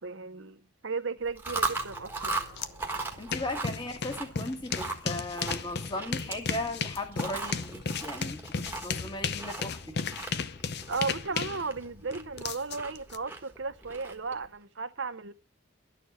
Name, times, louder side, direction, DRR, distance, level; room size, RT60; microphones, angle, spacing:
voice 1, 0.0-2.4 8.9-9.2 9.9-10.0 10.9-15.3, right 4 dB, 60° right, 0.8 m, -35 dB
Chewing mastication, 1.2-14.5, right 3 dB, 10° right, 1.4 m, -38 dB
sound 1, 1.5-5.2, left 1 dB, 75° left, 3.2 m, -55 dB
sound 2, 2.6-2.7 3.0-13.2, left 5 dB, 50° left, 0.6 m, -34 dB
voice 2, 3.2-9.8, left 1 dB, 20° left, 1.7 m, -37 dB
11.5 x 6.7 x 8.5 m
head